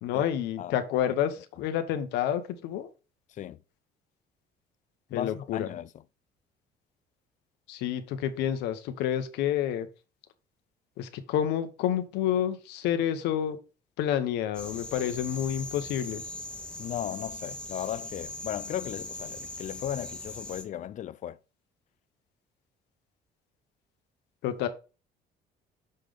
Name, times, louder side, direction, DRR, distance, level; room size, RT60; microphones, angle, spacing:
voice 1, 0.0-2.9 5.1-5.7 7.7-9.9 11.0-13.6 14.0-16.2 24.4-24.7, left 10 dB, 90° left, 0.9 m, -29 dB
voice 2, 3.3-3.6 5.1-6.0 16.8-21.4, left 11 dB, 45° left, 0.4 m, -36 dB
sound 1, 14.5-20.6, left 2 dB, 5° left, 1.2 m, -40 dB
6.6 x 3.8 x 5.0 m
cardioid pair, 110°, 17 cm